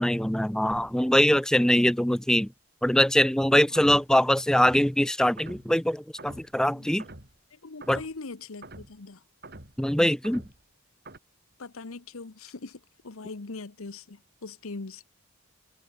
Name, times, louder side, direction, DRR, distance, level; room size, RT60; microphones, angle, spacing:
voice 1, 0.0-2.5 2.8-7.1 7.9-8.0 9.8-10.4, left 1 dB, 5° left, 0.4 m, -23 dB
sound 1, 0.7-1.1 3.7-4.1 4.6-4.9 5.4-5.8 6.2-6.5 7.0-7.4 7.8-8.2 8.6-9.0 9.4-9.8 10.2-10.6 11.1-11.2, right 2 dB, 45° right, 5.0 m, -46 dB
voice 2, 7.5-9.2 11.6-15.0, left 3 dB, 70° left, 1.0 m, -41 dB
head